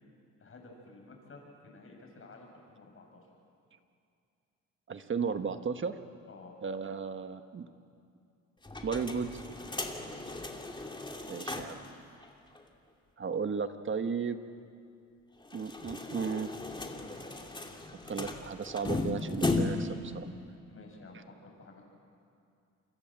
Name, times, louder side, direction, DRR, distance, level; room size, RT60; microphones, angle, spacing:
voice 1, 0.4-3.3 6.3-6.6 9.8-10.1 20.7-21.8, left 3 dB, 45° left, 1 dB, 7.5 m, -52 dB
voice 2, 4.9-6.0 6.6-7.7 8.8-9.3 11.3-11.8 13.2-14.4 15.5-16.5 18.1-20.3, right 5 dB, 40° right, 8 dB, 1.4 m, -34 dB
sound 1, 8.6-11.9 12.2-12.3 12.5-12.6 15.4-20.0, left 2 dB, 15° left, 2.8 m, -36 dB
28.5 x 24.0 x 7.6 m, 2.5 s
cardioid pair, 90°, 30 cm